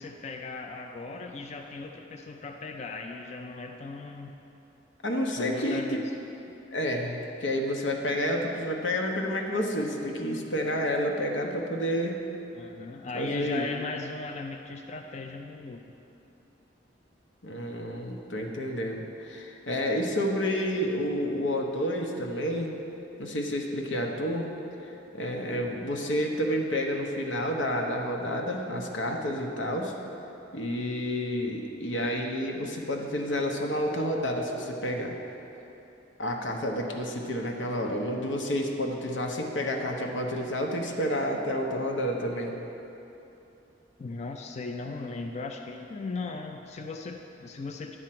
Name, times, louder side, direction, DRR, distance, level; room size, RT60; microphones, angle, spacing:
voice 1, 0.0-4.4 5.4-6.1 12.5-15.9 44.0-48.0, left 3 dB, 35° left, 3 dB, 0.4 m, -37 dB
voice 2, 5.0-6.0 6.7-12.2 13.1-13.7 17.4-22.7 23.2-24.5 25.1-29.9 30.5-35.1 36.2-42.5, equal, 90° left, 1 dB, 1.0 m, -30 dB
9.9 x 4.4 x 7.6 m, 3.0 s
head